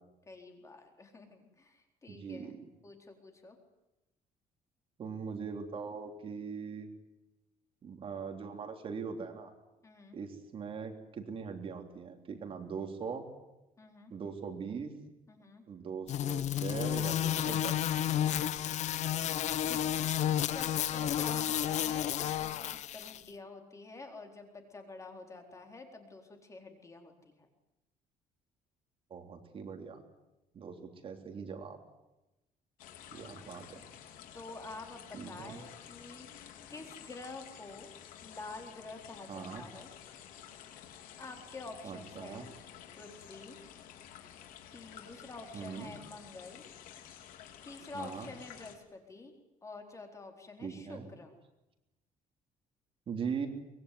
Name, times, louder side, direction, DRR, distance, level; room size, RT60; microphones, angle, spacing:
voice 1, 0.3-2.6 2.8-3.6 9.8-10.2 13.8-14.1 15.3-15.6 19.6-20.1 20.4-27.5 34.3-36.3 36.7-37.9 38.2-39.9 41.2-42.6 43.0-43.6 44.7-46.6 47.6-49.3 49.6-51.4, left 3 dB, 20° left, 4 dB, 4.1 m, -48 dB
voice 2, 2.1-2.5 5.0-6.9 7.8-9.5 10.1-13.3 14.1-14.9 15.7-17.9 21.0-21.1 29.1-30.0 30.5-31.8 33.1-33.8 35.1-35.6 39.3-39.6 41.8-42.5 45.5-45.9 47.9-48.3 50.6-51.1 53.1-53.5, right 6 dB, 40° right, 4 dB, 3.4 m, -41 dB
sound 1, 16.1-23.2, left 11 dB, 55° left, 0.9 m, -31 dB
sound 2, 32.8-48.8, left 10 dB, 80° left, 3.6 m, -52 dB
24.0 x 21.5 x 9.5 m, 0.98 s
cardioid pair, 140°, 14 cm